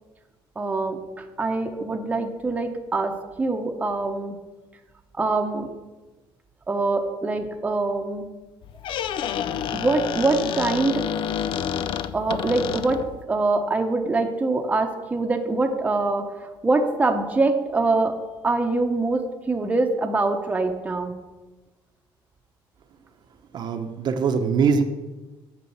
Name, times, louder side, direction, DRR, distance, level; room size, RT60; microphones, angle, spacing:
voice 1, 0.6-4.4 5.2-5.7 6.7-8.3 9.7-11.1 12.1-18.2 18.4-21.1, right 3 dB, 15° right, 4 dB, 0.9 m, -24 dB
Squeak, 8.6-13.2, left 9 dB, 60° left, 0.5 m, -29 dB
voice 2, 23.5-24.8, right 5 dB, 50° right, 6 dB, 0.8 m, -22 dB
8.5 x 7.0 x 7.1 m, 1.2 s
cardioid pair, 145°, 9 cm